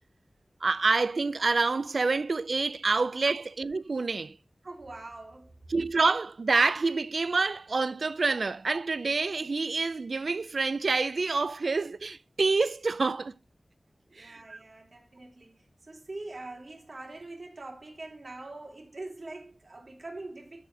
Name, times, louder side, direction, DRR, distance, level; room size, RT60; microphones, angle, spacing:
voice 1, 0.6-4.4 5.7-13.3 14.2-14.6, right 3 dB, 75° right, 0.3 m, -27 dB
voice 2, 4.6-5.6 14.1-20.6, right 2 dB, 60° right, 2.8 m, -43 dB
11.0 x 4.2 x 4.7 m
wide cardioid pair, 75°, 0 cm